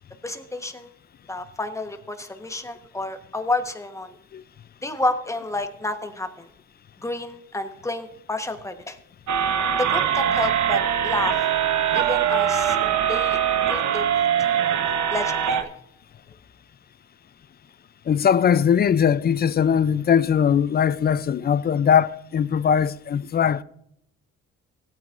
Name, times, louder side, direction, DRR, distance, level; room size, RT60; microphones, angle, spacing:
voice 1, 0.2-0.9 1.3-4.2 4.8-6.5 7.0-9.0 9.8-11.4 11.9-13.4 13.7-14.0 15.1-15.7, left 2 dB, 10° left, 1.1 m, -30 dB
sound 1, 9.3-15.6, right 9 dB, 70° right, 1.0 m, -22 dB
voice 2, 18.1-23.6, left 8 dB, 35° left, 0.4 m, -20 dB
16.0 x 9.0 x 2.5 m
cardioid pair, 90°, 30 cm